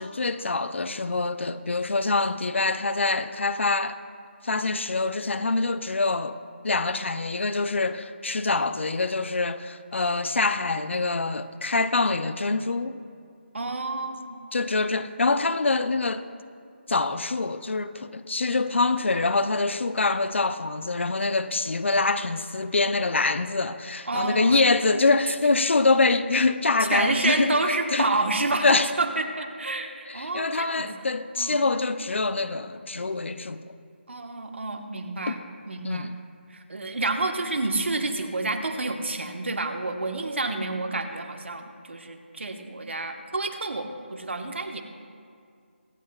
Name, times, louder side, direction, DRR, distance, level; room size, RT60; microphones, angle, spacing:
voice 1, 0.0-4.0 4.4-6.4 6.6-13.0 14.5-16.3 16.9-27.6 27.9-28.2 28.6-28.9 30.1-33.6 35.3-35.4 35.8-36.1, left 3 dB, 75° left, 0.6 m, -25 dB
voice 2, 13.5-14.4 24.1-24.6 26.8-30.9 31.4-31.6 34.1-36.1 36.5-44.8, right 2 dB, 75° right, 1.3 m, -29 dB
23.5 x 9.4 x 2.4 m
figure-of-eight pair, 170°, 6 cm